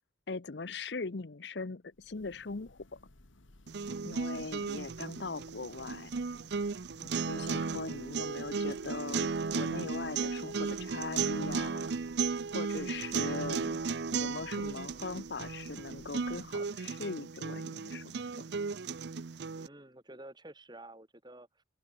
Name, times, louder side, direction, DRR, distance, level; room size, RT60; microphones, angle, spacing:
voice 1, 0.3-3.0 4.0-6.1 7.0-11.9 12.5-13.8 14.1-18.4, left 3 dB, 60° left, 0.8 m, -40 dB
Church bell, 1.9-16.8, left 1 dB, 85° left, 1.9 m, -60 dB
sound 1, 3.7-19.7, right 4 dB, 60° right, 0.6 m, -35 dB
sound 2, 8.7-8.9 9.6-13.3 14.9-15.2 15.5-15.6 16.5-16.6, left 2 dB, 20° left, 5.6 m, -66 dB
voice 2, 10.0-10.3 19.5-21.6, right 1 dB, 20° right, 4.4 m, -51 dB
open air
head